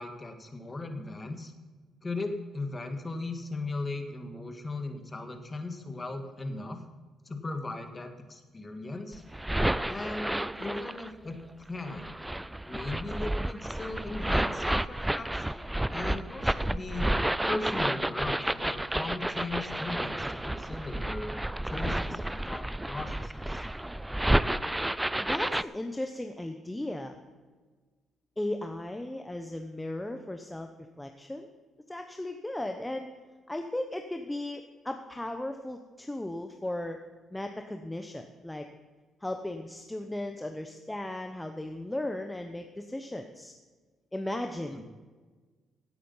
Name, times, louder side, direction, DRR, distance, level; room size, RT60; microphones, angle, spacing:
voice 1, 0.0-1.5 2.0-6.8 7.3-9.2 9.9-11.4 11.7-12.1 12.6-15.6 15.9-17.1 17.5-23.6 44.7-44.9, left 2 dB, 25° left, 6 dB, 1.8 m, -38 dB
sound 1, 9.1-11.1 11.9-25.6, right 1 dB, 10° right, 0.4 m, -31 dB
voice 2, 25.2-27.2 28.4-30.7 31.0-31.5 31.9-33.1 33.5-37.0 37.3-38.7 39.2-43.5 44.1-44.9, left 1 dB, 10° left, 6 dB, 0.9 m, -36 dB
16.5 x 8.4 x 5.6 m, 1.4 s
cardioid pair, 90°, 0 cm